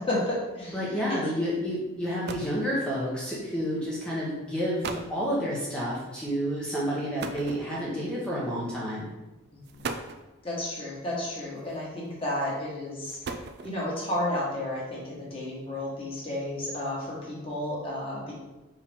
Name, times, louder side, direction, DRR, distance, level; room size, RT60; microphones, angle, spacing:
voice 1, 0.0-1.2 9.7-9.9 10.4-13.2 13.6-18.3, left 1 dB, 25° left, -6 dB, 1.9 m, -32 dB
voice 2, 0.7-9.1, equal, 5° left, -7 dB, 1.1 m, -30 dB
sound 1, 1.7-1.8 2.0-2.6 3.6-3.9 4.5-4.6 4.8-5.2 7.2-8.0 9.0-9.1 9.6-10.3 11.6-12.1 12.9-13.9, right 4 dB, 50° right, 0.4 m, -37 dB
5.5 x 4.7 x 3.7 m, 1.1 s
head